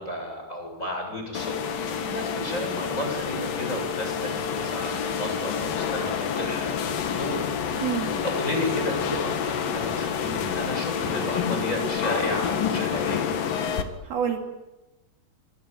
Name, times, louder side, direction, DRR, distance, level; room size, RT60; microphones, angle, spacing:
voice 1, 0.0-13.3, left 1 dB, 15° left, 2 dB, 8.2 m, -32 dB
sound 1, 1.3-13.8, left 7 dB, 65° left, 3.4 m, -28 dB
voice 2, 7.8-8.1 14.0-14.4, right 9 dB, 65° right, 3 dB, 4.6 m, -27 dB
26.0 x 23.0 x 9.2 m, 1.0 s
omnidirectional pair, 4.7 m